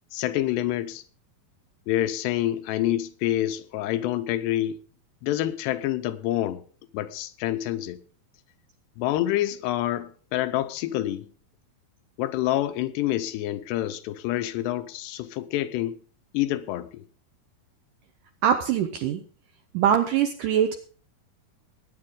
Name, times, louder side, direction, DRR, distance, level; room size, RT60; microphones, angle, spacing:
voice 1, 0.1-1.0 1.9-4.8 5.2-6.6 6.9-8.0 9.0-11.3 12.2-16.0 16.3-17.0, left 13 dB, 90° left, 3.0 m, -27 dB
voice 2, 18.4-19.2 19.7-20.8, right 9 dB, 80° right, 1.9 m, -23 dB
18.5 x 9.6 x 3.8 m
omnidirectional pair, 4.7 m